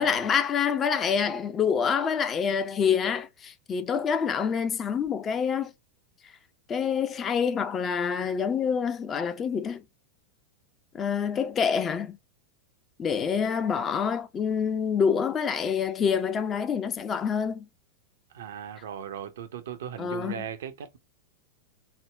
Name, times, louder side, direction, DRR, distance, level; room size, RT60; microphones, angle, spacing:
voice 1, 0.0-5.7 6.7-9.8 10.9-12.2 13.0-17.7 20.0-20.4, left 7 dB, 25° left, 0.4 m, -27 dB
voice 2, 18.3-21.0, right 9 dB, 60° right, 0.6 m, -38 dB
3.7 x 2.1 x 3.2 m
figure-of-eight pair, 90°, 0 cm